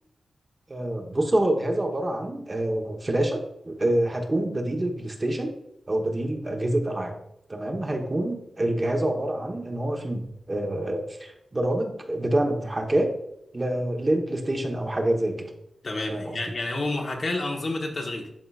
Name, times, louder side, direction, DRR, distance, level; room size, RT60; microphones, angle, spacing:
voice 1, 0.7-5.5 5.9-7.1 7.5-13.1 13.5-15.5 16.1-16.4, right 1 dB, 30° right, 3 dB, 1.0 m, -26 dB
voice 2, 15.8-18.3, left 2 dB, 50° left, 2 dB, 1.1 m, -29 dB
11.0 x 3.8 x 2.4 m, 0.77 s
cardioid pair, 70°, 0 cm